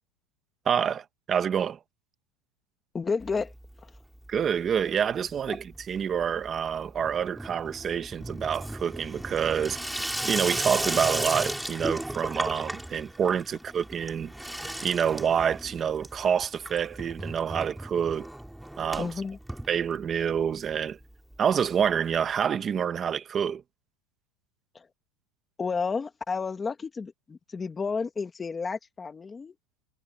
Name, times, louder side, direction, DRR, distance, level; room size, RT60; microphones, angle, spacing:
voice 1, 0.6-1.8 4.3-9.8 10.2-14.3 14.8-18.3 18.8-19.1 19.7-21.0 21.4-23.6, right 8 dB, 20° right, 1.3 m, -27 dB
voice 2, 2.9-3.5 5.5-5.6 19.0-19.4 24.7-24.9 25.6-29.5, left 5 dB, 15° left, 1.7 m, -31 dB
Water tap faucet / Sink (filling or washing), 3.2-4.0 4.2-4.8 5.1-20.4 20.7-20.8 21.0-21.1 21.3-21.4 22.4-22.5, right 1 dB, ahead, 4.7 m, -36 dB
supercardioid pair, 155°, 0 cm